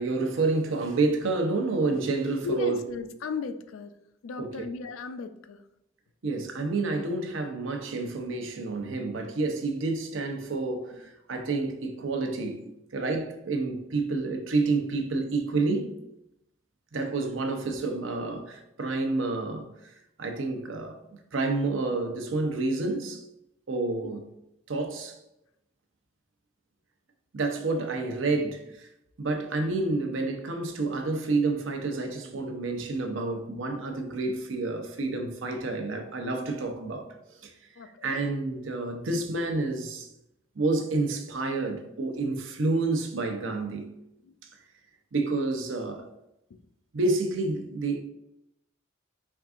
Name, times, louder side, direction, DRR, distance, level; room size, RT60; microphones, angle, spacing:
voice 1, 0.0-2.8 4.4-4.7 6.2-12.6 12.9-15.9 16.9-19.7 20.2-21.0 21.3-23.2 23.7-24.2 24.7-25.2 27.3-28.9 29.2-37.1 37.4-37.5 38.0-40.1 40.6-43.9 45.1-46.1 46.9-48.0, right 3 dB, 80° right, 0.7 m, -29 dB
voice 2, 2.4-4.0 4.2-5.6 24.0-24.1 27.8-27.9 37.8-38.2 44.2-44.3 46.5-46.6, left 5 dB, 85° left, 0.4 m, -36 dB
4.5 x 3.5 x 2.4 m
head